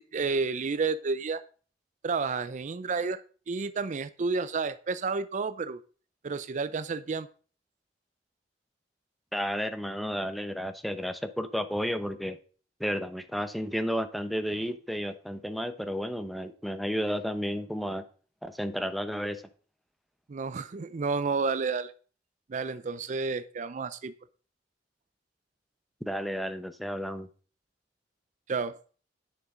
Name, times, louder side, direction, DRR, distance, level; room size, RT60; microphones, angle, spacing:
voice 1, 0.1-1.4 2.0-5.8 6.2-7.3 20.3-21.9 22.5-24.1 28.5-28.8, right 4 dB, 40° right, 14 dB, 0.4 m, -31 dB
voice 2, 9.3-12.4 12.8-18.0 18.4-19.4 26.0-27.3, equal, ahead, 10 dB, 0.7 m, -32 dB
9.6 x 6.8 x 4.9 m, 0.41 s
head